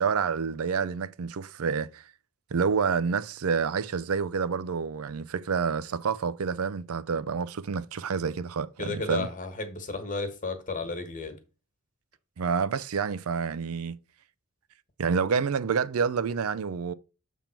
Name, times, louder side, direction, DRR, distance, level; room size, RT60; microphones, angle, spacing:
voice 1, 0.0-2.0 2.5-9.3 12.4-14.0 15.0-16.9, right 6 dB, 90° right, 0.5 m, -28 dB
voice 2, 8.8-11.3, left 3 dB, 40° left, 1.4 m, -33 dB
7.3 x 3.6 x 5.8 m
head